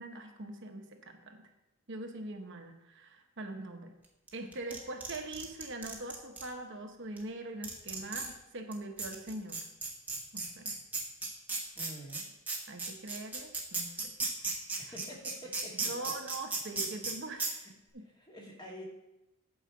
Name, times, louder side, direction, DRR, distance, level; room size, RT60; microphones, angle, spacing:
voice 1, 0.0-1.4 1.9-3.9 4.3-9.7 10.3-10.7 12.7-14.1 14.8-14.9 15.8-17.5 17.9-18.1, right 2 dB, 60° right, 4 dB, 1.0 m, -42 dB
sound 1, 4.3-6.5 7.2-7.3 7.6-8.3 8.7-8.8 9.0-17.1 17.4-17.5, right 3 dB, 10° right, 1.2 m, -35 dB
voice 2, 11.7-12.2 14.8-15.9 17.4-17.6 18.2-18.8, equal, 20° left, -3 dB, 2.0 m, -47 dB
8.5 x 4.9 x 7.1 m, 0.95 s
head